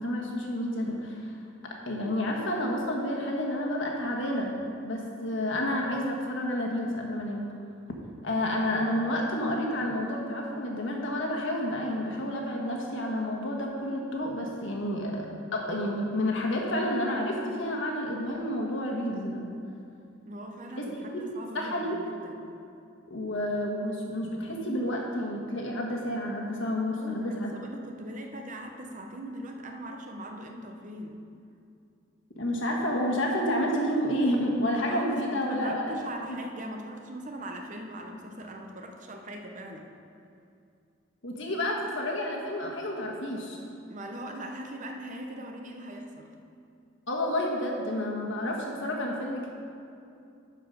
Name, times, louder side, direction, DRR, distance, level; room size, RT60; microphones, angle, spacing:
voice 1, 0.0-1.3 1.6-4.6 4.8-7.4 8.2-19.4 20.8-21.1 21.5-22.0 23.1-27.5 32.4-35.9 36.3-36.4 41.2-43.6 47.1-49.5, left 1 dB, 65° left, -1 dB, 1.4 m, -30 dB
voice 2, 20.2-22.4 27.0-31.2 34.9-39.9 43.9-46.3, right 1 dB, 40° right, 3 dB, 0.8 m, -40 dB
11.5 x 5.0 x 5.2 m, 2.5 s
head